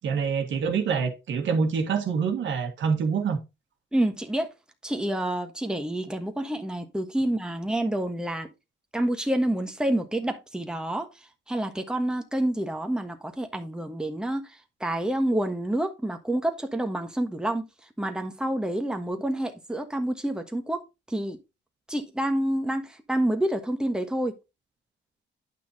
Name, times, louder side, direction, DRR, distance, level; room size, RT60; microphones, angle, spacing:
voice 1, 0.0-3.4, right 5 dB, 70° right, 1.8 m, -26 dB
voice 2, 3.9-4.5 4.8-8.5 8.9-21.4 21.9-24.4, right 1 dB, 5° right, 1.3 m, -28 dB
9.7 x 5.7 x 2.8 m
cardioid pair, 90°, 20 cm